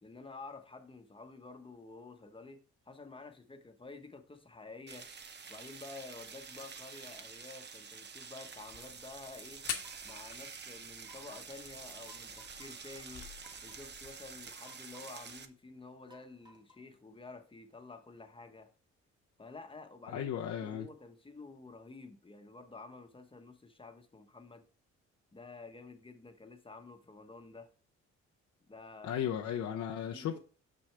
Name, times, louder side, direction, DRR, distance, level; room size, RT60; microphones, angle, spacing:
voice 1, 0.0-2.6 2.9-5.1 5.5-9.6 10.0-13.3 13.6-18.7 19.4-20.3 20.6-24.6 25.3-27.7 28.7-29.1 30.1-30.4, left 3 dB, 15° left, 1.1 m, -50 dB
sound 1, 4.9-15.5, right 5 dB, 35° right, 0.8 m, -48 dB
sound 2, 8.6-14.6, left 8 dB, 85° left, 1.5 m, -47 dB
sound 3, 9.8-10.3 11.0-11.6 12.1-12.7 13.4-13.9 14.6-15.3 16.1-16.9, left 2 dB, 15° right, 1.7 m, -61 dB
voice 2, 20.1-20.9 29.0-30.4, left 9 dB, 70° left, 0.8 m, -35 dB
6.2 x 6.2 x 3.3 m
cardioid pair, 90°, 30 cm